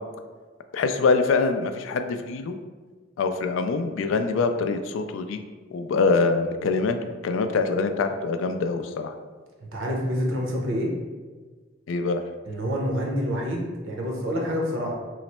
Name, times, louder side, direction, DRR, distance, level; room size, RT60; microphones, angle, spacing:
voice 1, 0.7-2.6 3.2-5.4 5.7-7.0 7.2-9.1 11.9-12.2, left 4 dB, 75° left, 8 dB, 0.3 m, -24 dB
voice 2, 9.6-10.9 12.5-14.9, equal, 80° right, -1 dB, 0.7 m, -27 dB
3.1 x 2.0 x 4.1 m, 1.4 s
head